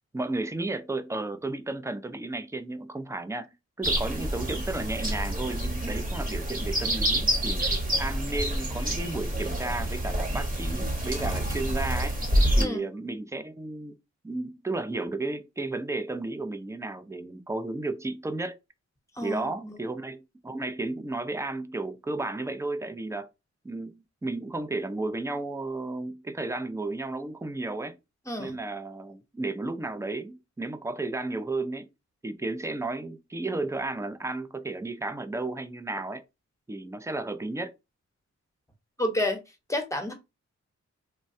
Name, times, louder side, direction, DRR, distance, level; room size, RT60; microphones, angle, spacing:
voice 1, 0.1-7.6 8.0-12.2 12.6-14.0 14.2-18.6 19.2-23.3 23.6-28.0 28.4-31.9 32.2-36.2 36.7-37.7, right 2 dB, 10° right, 0.4 m, -33 dB
sound 1, 3.8-12.6, right 1 dB, 30° right, 1.0 m, -27 dB
voice 2, 19.1-19.8 28.3-28.5 39.0-39.4 39.7-40.1, left 1 dB, 10° left, 0.9 m, -30 dB
3.1 x 2.2 x 2.6 m
cardioid pair, 70°, 30 cm